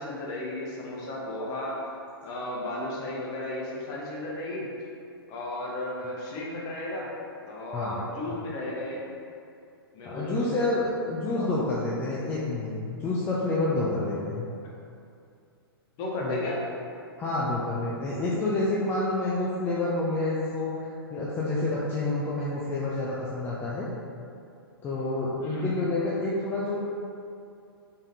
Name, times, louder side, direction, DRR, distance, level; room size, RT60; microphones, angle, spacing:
voice 1, 0.0-1.9 2.2-4.7 5.3-7.1 7.4-9.0 9.9-10.7 11.3-11.5 16.0-16.6 25.4-25.7, left 1 dB, 30° left, -3 dB, 0.8 m, -34 dB
voice 2, 10.0-14.5 16.2-16.4 17.2-23.9 24.8-26.8, left 2 dB, 15° left, -7 dB, 0.4 m, -28 dB
3.5 x 3.5 x 2.7 m, 2.5 s
figure-of-eight pair, 115°, 13 cm